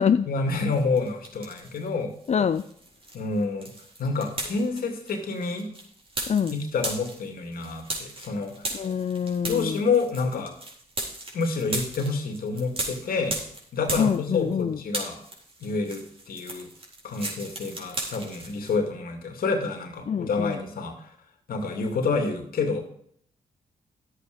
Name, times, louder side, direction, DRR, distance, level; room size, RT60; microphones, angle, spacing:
voice 1, 0.2-2.1 3.1-3.7 4.0-5.7 6.4-8.7 9.5-10.5 11.3-13.4 13.7-15.2 15.6-16.7 17.0-21.1 21.5-22.8, left 4 dB, 75° left, 4 dB, 2.4 m, -28 dB
sound 1, 0.7-1.9 2.2-14.6 14.9-18.8, right 2 dB, 40° right, 3.9 m, -36 dB
voice 2, 2.3-2.6 6.3-6.5 8.7-9.7 14.0-14.8 20.1-20.5, left 7 dB, 45° left, 10 dB, 0.5 m, -24 dB
11.5 x 8.2 x 5.3 m, 0.66 s
supercardioid pair, 55°, 15 cm